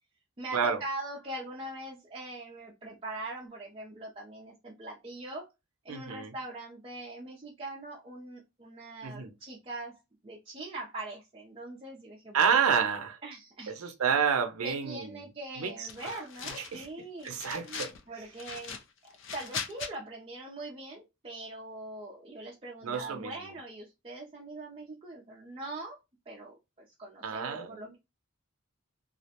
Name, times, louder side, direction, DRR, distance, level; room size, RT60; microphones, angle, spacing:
voice 1, 0.4-5.5 5.8-12.6 13.2-13.9 14.6-26.0 26.3-28.0, right 2 dB, 25° right, 0.4 m, -42 dB
voice 2, 5.9-6.3 9.0-9.3 12.3-13.2 13.7-15.1 15.6-15.9 16.7-16.9 17.2-17.9 22.8-23.3 27.2-28.0, right 7 dB, 80° right, 0.5 m, -29 dB
sound 1, 15.8-16.9 17.2-18.0 18.3-19.9, left 6 dB, 55° left, 0.4 m, -40 dB
2.4 x 2.1 x 2.8 m
head